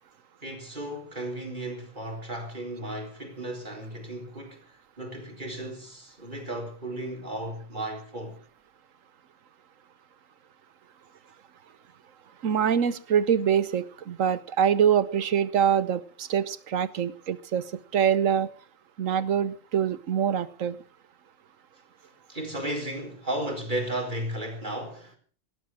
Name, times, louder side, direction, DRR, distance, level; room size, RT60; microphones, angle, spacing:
voice 1, 0.4-4.6 5.0-8.4 22.3-25.2, right 1 dB, 35° right, 4.4 m, -34 dB
voice 2, 12.4-17.6 17.9-18.5 19.0-20.8, right 8 dB, 80° right, 1.4 m, -24 dB
17.5 x 13.0 x 6.2 m
omnidirectional pair, 1.3 m